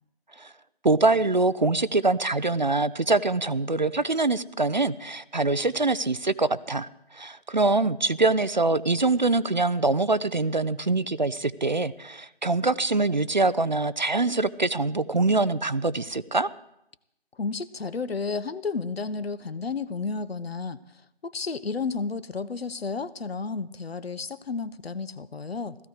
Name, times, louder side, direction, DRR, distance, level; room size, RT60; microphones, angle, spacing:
voice 1, 0.8-16.5, right 3 dB, 45° right, 16 dB, 0.5 m, -24 dB
voice 2, 17.4-20.8 21.2-25.8, left 4 dB, 70° left, 16 dB, 1.0 m, -32 dB
16.5 x 14.0 x 4.8 m, 0.82 s
figure-of-eight pair, 175°, 32 cm